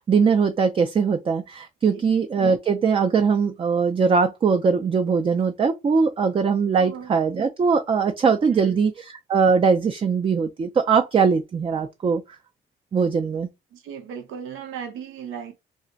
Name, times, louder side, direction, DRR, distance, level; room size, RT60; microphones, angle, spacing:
voice 1, 0.0-12.4 12.9-13.5, right 5 dB, 30° right, 0.4 m, -21 dB
voice 2, 1.9-2.2 6.7-7.1 8.5-8.8 13.7-15.5, right 8 dB, 85° right, 0.6 m, -37 dB
2.4 x 2.1 x 3.8 m
cardioid pair, 90°, 20 cm